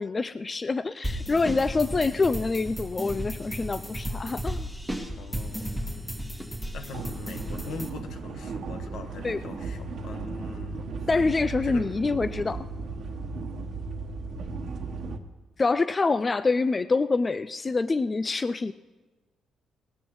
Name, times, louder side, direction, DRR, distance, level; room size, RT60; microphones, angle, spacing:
voice 1, 0.0-4.7 9.2-9.4 11.1-12.7 15.6-18.7, left 3 dB, 30° left, 13 dB, 0.3 m, -26 dB
sound 1, 1.0-7.9, equal, 5° left, 2.0 m, -34 dB
voice 2, 1.4-1.9 5.2-5.8 6.7-10.9 11.6-11.9, left 4 dB, 75° left, 7 dB, 1.3 m, -42 dB
sound 2, 6.9-15.2, right 4 dB, 60° right, 1.1 m, -36 dB
19.0 x 13.5 x 3.1 m, 1.3 s
cardioid pair, 90°, 0 cm